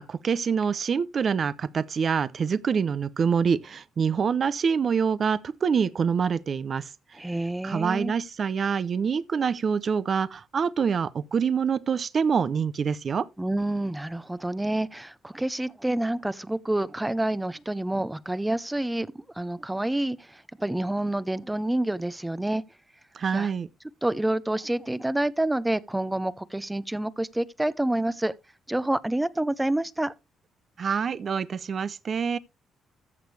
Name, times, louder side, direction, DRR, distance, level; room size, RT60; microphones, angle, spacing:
voice 1, 0.0-6.9 7.6-13.3 23.1-23.7 30.8-32.4, right 6 dB, 50° right, 0.6 m, -26 dB
voice 2, 7.2-8.1 13.4-22.6 23.3-23.5 24.0-28.3 28.7-30.1, right 1 dB, 10° right, 0.6 m, -28 dB
14.5 x 6.7 x 3.3 m
cardioid pair, 90°, 0 cm